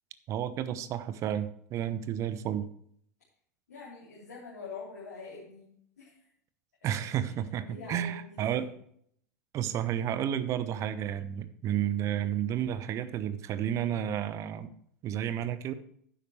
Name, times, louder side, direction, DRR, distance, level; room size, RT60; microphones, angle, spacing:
voice 1, 0.3-2.7 6.8-8.7 9.5-14.7 15.0-15.7, right 10 dB, 35° right, 13 dB, 0.9 m, -31 dB
voice 2, 3.7-6.3 7.0-7.3 7.7-8.6, left 4 dB, 70° left, -7 dB, 3.6 m, -45 dB
12.0 x 9.6 x 3.2 m, 0.66 s
figure-of-eight pair, 85°, 9 cm